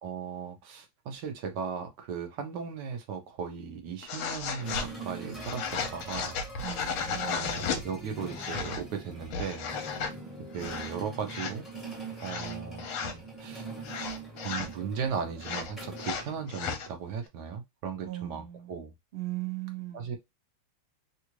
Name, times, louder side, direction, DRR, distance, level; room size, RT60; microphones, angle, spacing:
voice 1, 0.0-6.4 7.2-9.7 10.5-11.7 12.2-13.7 14.4-18.9 19.9-20.2, right 6 dB, 65° right, 1.2 m, -37 dB
sound 1, 4.0-4.9 5.4-7.8 8.3-8.8 9.2-10.1 10.6-11.0 11.3-11.5 12.2-13.1 13.8-14.7 15.4-16.9, left 6 dB, 80° left, 1.5 m, -34 dB
sound 2, 4.6-16.9, right 2 dB, ahead, 0.7 m, -43 dB
voice 2, 6.6-7.5 18.0-18.7 19.1-20.2, right 15 dB, 85° right, 0.5 m, -38 dB
3.6 x 2.4 x 2.9 m
omnidirectional pair, 2.3 m